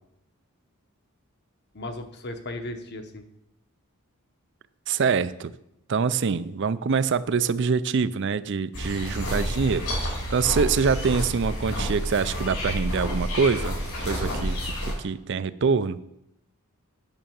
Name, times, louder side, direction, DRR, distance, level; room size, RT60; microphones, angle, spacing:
voice 1, 1.7-3.2, left 1 dB, 50° left, 6 dB, 1.1 m, -36 dB
voice 2, 4.9-5.5 5.9-13.8 14.0-14.6 15.0-16.0, right 5 dB, 55° right, 16 dB, 0.4 m, -25 dB
sound 1, 8.7-14.9, equal, 80° left, 4.4 m, -29 dB
9.0 x 6.3 x 7.1 m, 0.82 s
head